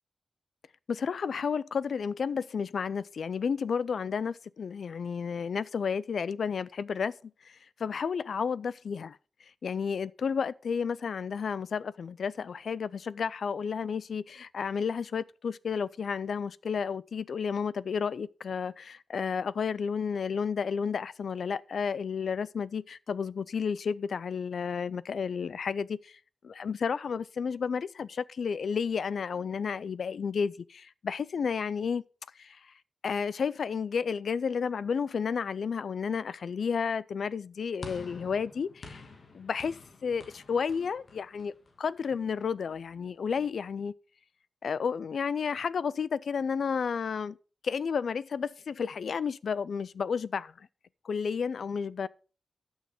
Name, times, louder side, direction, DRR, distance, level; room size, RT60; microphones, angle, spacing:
voice 1, 0.9-7.1 7.4-9.2 9.6-32.0 32.4-32.6 33.0-39.0 39.3-43.9 44.6-47.4 47.6-50.7 51.0-52.1, left 6 dB, 70° left, 0.4 m, -32 dB
sound 1, 37.8-42.2, left 3 dB, 45° left, 1.4 m, -49 dB
11.0 x 6.4 x 5.0 m
wide cardioid pair, 175°, 0 cm